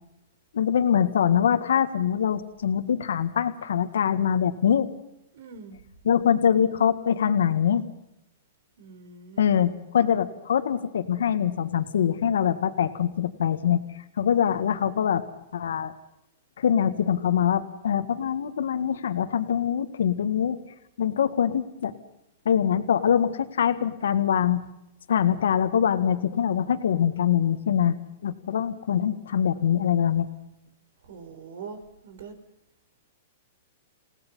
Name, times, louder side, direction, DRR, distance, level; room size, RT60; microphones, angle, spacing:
voice 1, 0.5-4.9 6.0-7.8 9.4-13.8 14.2-15.2 15.5-15.9 16.6-20.6 21.0-21.9 22.5-24.6 25.1-27.9 28.2-30.3, left 8 dB, 85° left, 10 dB, 1.8 m, -23 dB
voice 2, 5.3-5.8 8.8-9.5 14.4-14.9 31.0-32.3, right 5 dB, 70° right, 10 dB, 4.5 m, -43 dB
29.0 x 18.0 x 5.6 m, 0.85 s
hypercardioid pair, 150°, 0 cm